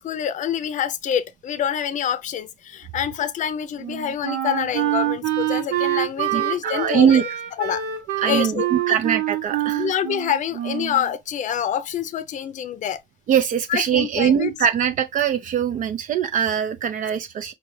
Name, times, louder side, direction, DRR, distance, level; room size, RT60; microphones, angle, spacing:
voice 1, 0.0-7.3 7.6-7.8 8.2-9.0 9.7-13.0 13.7-14.5, left 9 dB, 45° left, 0.6 m, -26 dB
Wind instrument woodwind instrument, 3.8-11.1, right 12 dB, 85° right, 0.9 m, -26 dB
voice 2, 6.3-7.2 8.2-9.9 13.3-17.5, right 8 dB, 50° right, 0.5 m, -22 dB
5.0 x 2.3 x 3.1 m
cardioid pair, 110°, 17 cm